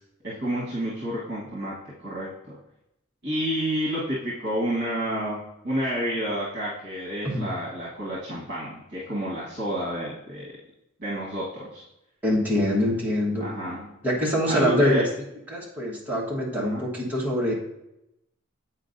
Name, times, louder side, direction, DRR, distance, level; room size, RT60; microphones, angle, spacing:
voice 1, 0.2-1.7 2.0-2.6 3.2-5.4 5.6-10.5 11.0-11.8 13.4-13.9 14.5-15.1 16.6-16.8, equal, 50° right, -6 dB, 1.4 m, -29 dB
voice 2, 12.2-13.4 14.0-15.0 15.5-17.5, equal, 10° right, -5 dB, 1.2 m, -24 dB
8.1 x 4.5 x 2.6 m, 0.86 s
head